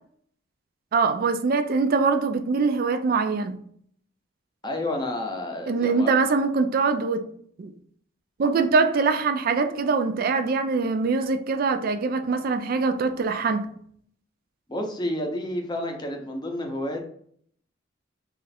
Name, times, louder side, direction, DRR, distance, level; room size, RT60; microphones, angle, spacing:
voice 1, 0.9-3.6 5.7-7.2 7.6-7.7 8.4-13.7, right 4 dB, 50° right, 0.4 m, -23 dB
voice 2, 4.6-6.1 14.7-17.0, left 1 dB, 20° left, 0.6 m, -30 dB
3.1 x 2.4 x 4.1 m
head